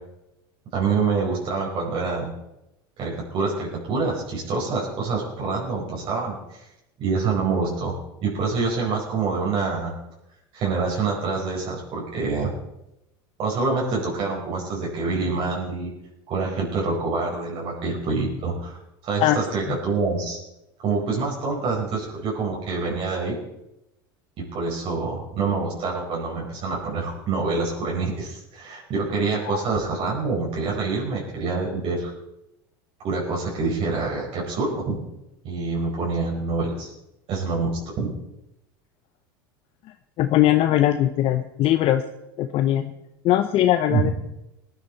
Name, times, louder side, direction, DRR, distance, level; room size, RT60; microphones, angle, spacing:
voice 1, 0.7-2.3 3.0-6.7 7.0-7.9 8.2-9.9 10.5-12.5 13.4-15.9 16.3-20.4 20.8-23.4 24.5-32.1 33.0-35.0 35.4-36.9 37.3-38.1 43.9-44.1, right 4 dB, 50° right, -4 dB, 5.0 m, -26 dB
voice 2, 40.2-42.0 42.4-42.9 43.2-44.1, left 13 dB, 50° left, 8 dB, 0.8 m, -20 dB
18.5 x 12.0 x 4.2 m, 0.89 s
hypercardioid pair, 90°, 12 cm